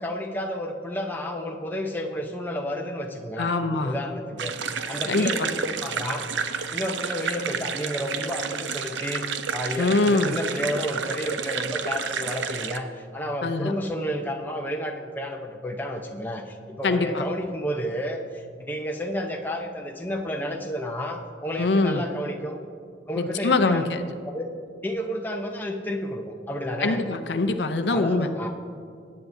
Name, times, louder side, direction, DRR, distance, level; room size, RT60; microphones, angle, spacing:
voice 1, 0.0-3.5 3.8-6.3 6.7-22.6 23.1-23.9 24.2-24.5 24.8-27.0 27.9-28.5, equal, 10° left, 1 dB, 0.7 m, -31 dB
voice 2, 3.4-4.0 5.1-5.3 9.8-10.3 13.4-13.7 16.8-17.2 21.6-22.0 23.2-24.0 26.8-28.3, left 3 dB, 70° left, 8 dB, 0.6 m, -23 dB
sound 1, 4.4-12.8, right 6 dB, 80° right, 0.6 m, -30 dB
20.5 x 9.5 x 2.7 m, 2.3 s
head